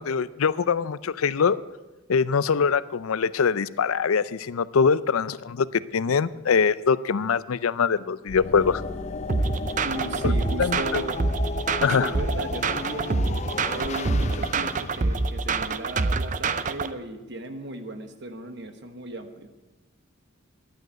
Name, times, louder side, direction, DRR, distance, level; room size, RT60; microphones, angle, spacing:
voice 1, 0.0-1.6 2.1-8.8 10.2-10.3 10.6-11.0 11.8-12.1, left 6 dB, 85° left, 17 dB, 0.5 m, -23 dB
sound 1, 8.3-16.4, left 3 dB, 35° left, 0.5 m, -35 dB
sound 2, 9.3-16.9, right 3 dB, 35° right, 0.5 m, -26 dB
voice 2, 9.8-11.2 11.8-13.3 13.7-19.5, right 1 dB, 55° right, 8 dB, 1.3 m, -36 dB
11.5 x 9.3 x 8.9 m, 1.1 s
head